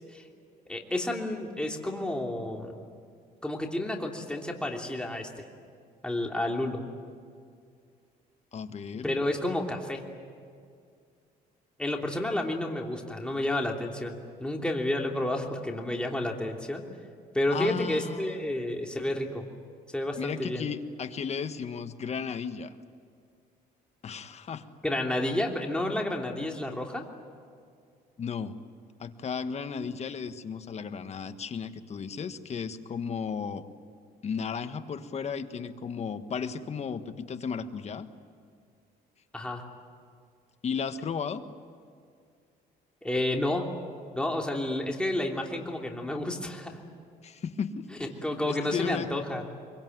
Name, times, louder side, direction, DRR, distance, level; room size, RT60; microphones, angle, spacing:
voice 1, 0.7-2.8 3.4-5.3 6.0-6.8 9.0-10.0 11.8-16.8 17.3-19.4 19.9-20.6 24.8-27.0 39.3-39.6 43.0-43.7 44.1-46.8 48.0-49.4, left 1 dB, 5° left, 1 dB, 3.0 m, -30 dB
voice 2, 8.5-9.2 17.5-18.4 20.2-22.7 24.0-24.7 28.2-28.6 29.0-33.6 34.2-38.1 40.6-41.4 47.2-47.9 48.5-49.1, left 6 dB, 40° left, 9 dB, 1.4 m, -34 dB
24.5 x 23.5 x 9.4 m, 2.2 s
cardioid pair, 110°, 17 cm